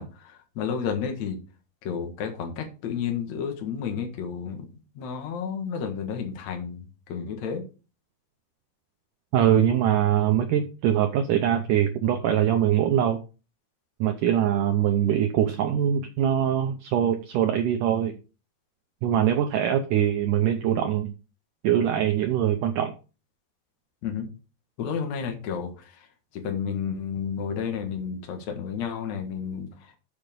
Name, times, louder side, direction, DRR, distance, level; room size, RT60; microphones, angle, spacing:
voice 1, 0.0-1.4 1.8-4.7 5.0-7.6 24.0-24.3 24.8-25.9 26.4-29.7, left 7 dB, 55° left, 4 dB, 2.5 m, -31 dB
voice 2, 9.3-13.2 14.0-18.2 19.0-21.1 21.6-22.9, right 10 dB, 75° right, 5 dB, 2.0 m, -23 dB
7.4 x 6.5 x 5.2 m, 0.33 s
omnidirectional pair, 4.5 m